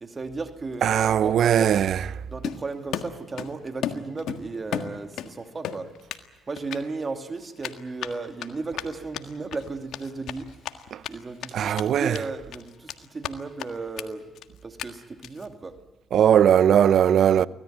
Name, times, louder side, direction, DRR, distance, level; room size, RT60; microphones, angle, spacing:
voice 1, 0.0-1.8 2.3-5.9 6.5-10.5 11.1-14.2 14.6-15.8 17.4-17.5, right 3 dB, 30° right, 2.7 m, -35 dB
voice 2, 0.8-1.9 11.5-12.1 16.1-17.5, right 9 dB, 65° right, 0.7 m, -19 dB
Run, 2.4-3.5 3.8-5.3 5.6-6.3 6.6-6.8 7.6-11.1 11.4-11.5 11.8-12.2 12.5-13.3 13.6-13.7 14.0-14.1 14.4-14.5 14.8-14.9 15.2-15.5, left 10 dB, 80° left, 1.6 m, -34 dB
24.5 x 17.5 x 9.3 m
cardioid pair, 80°, 0 cm